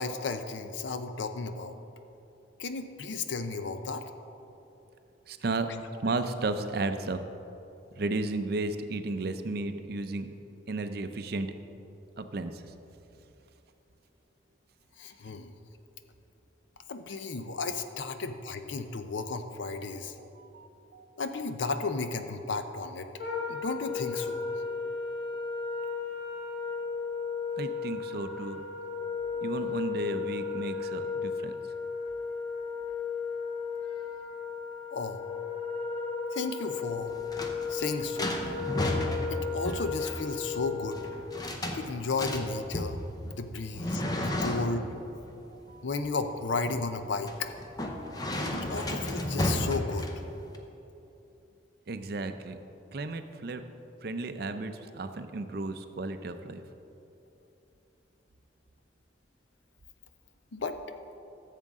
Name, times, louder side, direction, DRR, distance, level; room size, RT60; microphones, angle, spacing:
voice 1, 0.0-1.8 2.6-4.1 15.0-15.5 16.9-20.1 21.2-23.1 23.5-24.4 34.9-35.2 36.3-37.2 37.7-38.4 39.3-41.0 41.7-43.0 43.2-44.9 45.8-47.5 48.5-50.1 60.5-60.8, left 4 dB, 75° left, 8 dB, 0.6 m, -34 dB
voice 2, 5.3-5.7 6.0-7.2 8.0-10.3 10.7-11.5 12.2-12.6 20.2-21.1 27.6-28.6 29.4-31.5 45.3-45.8 51.9-52.6 52.9-53.6 54.0-56.6, right 2 dB, 55° right, 9 dB, 0.5 m, -34 dB
Wind instrument woodwind instrument, 23.2-41.3, left 5 dB, 55° left, 2.4 m, -35 dB
sound 1, 36.9-50.6, left 1 dB, 20° left, 0.7 m, -34 dB
14.5 x 7.5 x 3.6 m, 3.0 s
head